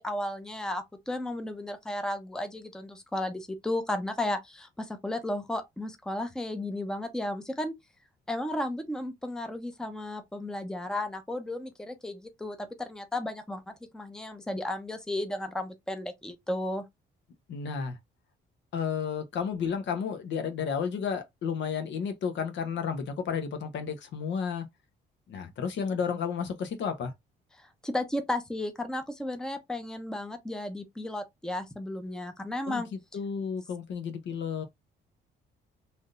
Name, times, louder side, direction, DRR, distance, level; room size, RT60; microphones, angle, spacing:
voice 1, 0.0-7.7 8.3-16.8 27.6-32.9, left 1 dB, 5° left, 0.6 m, -34 dB
voice 2, 17.5-18.0 18.7-24.7 25.3-27.1 32.7-34.6, left 6 dB, 70° left, 0.8 m, -32 dB
3.4 x 2.7 x 2.4 m
cardioid pair, 90°, 20 cm